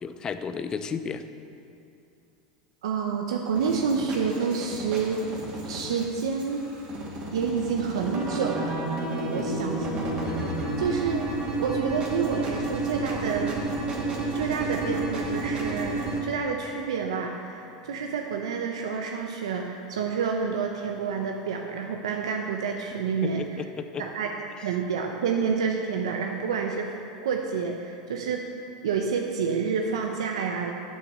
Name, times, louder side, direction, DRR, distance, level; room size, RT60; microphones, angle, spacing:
voice 1, 0.0-1.2 9.3-9.7 23.2-24.0, left 6 dB, 25° left, 10 dB, 0.5 m, -33 dB
voice 2, 2.8-5.2 5.6-6.6 7.3-8.7 9.3-9.8 10.8-11.3 11.6-13.6 14.3-23.4 24.0-24.3 24.6-26.9 27.2-28.4 28.8-30.7, right 6 dB, 90° right, 2 dB, 0.7 m, -28 dB
sound 1, 3.6-16.2, right 2 dB, 40° right, 2.3 m, -31 dB
8.9 x 6.5 x 6.7 m, 2.6 s
supercardioid pair, 110°, 3 cm